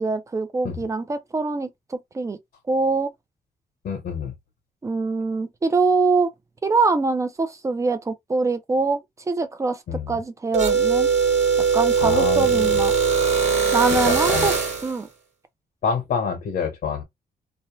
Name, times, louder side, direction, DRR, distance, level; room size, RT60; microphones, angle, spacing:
voice 1, 0.0-2.4 2.7-3.1 4.8-6.3 6.6-11.1 11.7-12.9 13.7-14.5 14.8-15.1, right 3 dB, 20° right, 0.4 m, -23 dB
voice 2, 3.8-4.3 9.9-10.2 12.0-12.8 14.1-14.5 15.8-17.0, left 6 dB, 70° left, 1.0 m, -27 dB
sound 1, 10.5-14.9, right 6 dB, 40° right, 1.3 m, -20 dB
2.7 x 2.1 x 2.9 m
wide cardioid pair, 175°, 17 cm